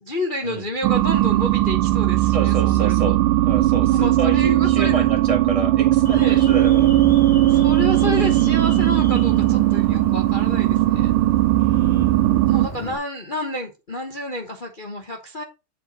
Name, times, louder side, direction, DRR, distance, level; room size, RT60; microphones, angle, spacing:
voice 1, 0.0-3.1 3.9-5.1 6.1-6.4 7.5-11.1 12.5-15.4, left 1 dB, 35° left, 0.8 m, -30 dB
sound 1, 0.8-12.7, right 15 dB, 85° right, 1.4 m, -18 dB
voice 2, 2.3-3.2 3.4-6.9 11.5-12.2, right 3 dB, 20° right, 1.4 m, -28 dB
Alarm, 6.0-13.0, equal, 10° left, 1.2 m, -34 dB
7.8 x 5.0 x 4.1 m
omnidirectional pair, 2.3 m